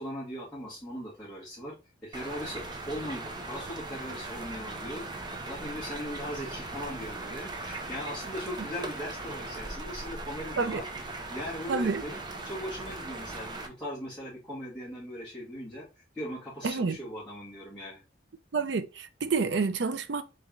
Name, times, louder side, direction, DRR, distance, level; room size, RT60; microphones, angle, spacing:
voice 1, 0.0-1.8 2.0-5.0 5.4-18.0, equal, 5° left, 1.5 m, -39 dB
sound 1, 2.1-13.7, right 2 dB, 25° right, 0.6 m, -39 dB
voice 2, 11.7-12.0 16.6-17.0 18.5-20.2, right 4 dB, 70° right, 0.5 m, -28 dB
3.4 x 3.2 x 3.6 m
head